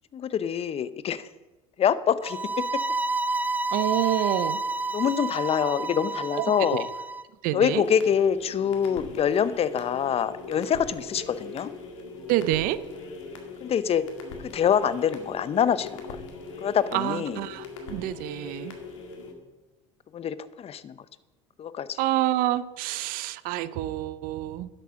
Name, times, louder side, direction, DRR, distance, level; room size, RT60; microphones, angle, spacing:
voice 1, 0.1-1.3 1.8-2.4 2.7-2.8 4.9-6.9 7.5-11.7 13.6-14.0 14.5-16.2 16.6-17.4 20.1-21.0 21.6-22.0, left 8 dB, 40° left, 15 dB, 0.7 m, -25 dB
sound 1, 2.2-7.2, right 3 dB, 10° right, 0.6 m, -29 dB
voice 2, 3.7-4.6 6.4-6.5 7.4-7.8 12.3-12.8 16.9-17.6 17.9-18.7 22.0-24.7, right 14 dB, 65° right, 15 dB, 0.6 m, -27 dB
sound 2, 7.7-19.3, left 3 dB, 85° left, 2.0 m, -40 dB
10.5 x 7.7 x 6.3 m, 1.1 s
hypercardioid pair, 75°, 16 cm